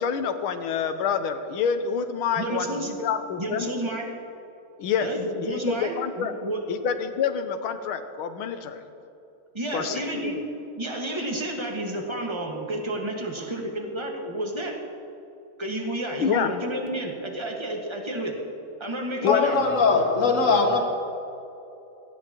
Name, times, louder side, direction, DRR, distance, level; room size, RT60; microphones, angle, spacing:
voice 1, 0.0-3.7 4.8-5.1 5.4-6.3 6.7-8.8 9.7-10.4 16.2-16.5 19.2-19.4, left 7 dB, 85° left, 8 dB, 1.7 m, -27 dB
voice 2, 2.4-2.9 3.4-4.1 5.0-6.6 9.5-10.4 10.8-14.8 15.6-18.4 18.8-19.6, right 1 dB, 15° right, 0 dB, 1.4 m, -31 dB
voice 3, 19.3-20.8, left 4 dB, 40° left, 0 dB, 2.0 m, -21 dB
17.5 x 15.0 x 3.0 m, 2.8 s
omnidirectional pair, 2.3 m